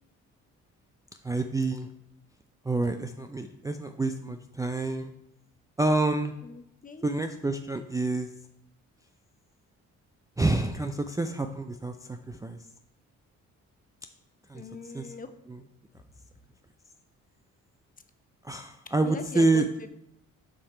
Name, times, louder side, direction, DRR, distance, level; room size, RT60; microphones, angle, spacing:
voice 1, 1.2-1.9 2.6-5.1 5.8-6.3 7.0-8.3 10.4-12.6 14.5-14.6 14.9-15.1 18.4-19.7, right 2 dB, 10° right, 5 dB, 0.4 m, -28 dB
voice 2, 6.4-7.1 14.5-15.3 19.0-19.9, left 4 dB, 30° left, 9 dB, 0.7 m, -42 dB
7.3 x 4.8 x 4.4 m, 0.78 s
cardioid pair, 90°, 30 cm